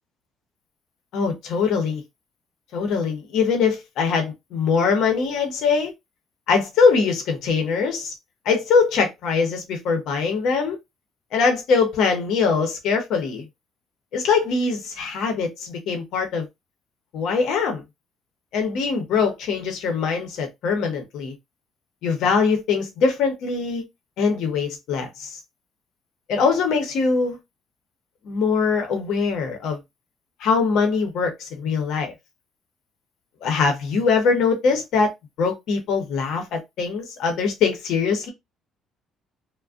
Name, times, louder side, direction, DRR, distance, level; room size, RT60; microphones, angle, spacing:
voice 1, 1.1-2.0 2.7-5.9 6.5-8.1 8.5-10.8 11.3-13.4 14.1-16.5 17.1-17.8 18.5-21.3 22.0-23.8 24.2-25.4 26.3-27.4 28.2-29.8 30.4-32.1 33.4-35.1 35.4-38.3, left 5 dB, 70° left, 0.7 m, -22 dB
2.4 x 2.1 x 2.4 m
cardioid pair, 105°, 0 cm